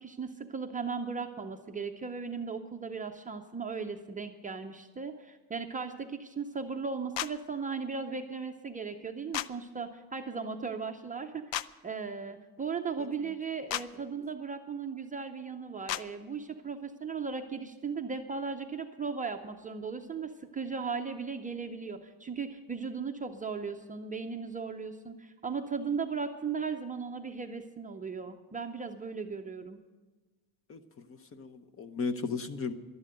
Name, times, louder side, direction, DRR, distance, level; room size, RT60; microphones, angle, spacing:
voice 1, 0.0-11.4 11.8-29.8, right 5 dB, 20° right, 4 dB, 0.6 m, -37 dB
sound 1, 7.1-7.3 9.3-9.5 11.5-11.7 13.7-13.8 15.9-16.0, left 14 dB, 80° left, 0.6 m, -32 dB
voice 2, 30.7-32.7, left 4 dB, 30° left, 10 dB, 0.8 m, -36 dB
12.0 x 11.0 x 7.8 m, 1.2 s
cardioid pair, 155°, 43 cm